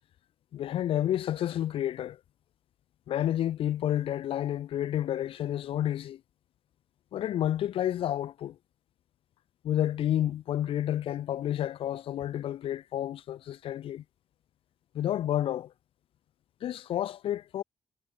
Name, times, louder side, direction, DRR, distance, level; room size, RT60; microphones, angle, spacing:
voice 1, 0.5-2.2 3.1-6.2 7.1-8.6 9.6-14.0 14.9-15.7 16.6-17.6, left 11 dB, 75° left, 7.6 m, -30 dB
supercardioid pair, 60°, 9 cm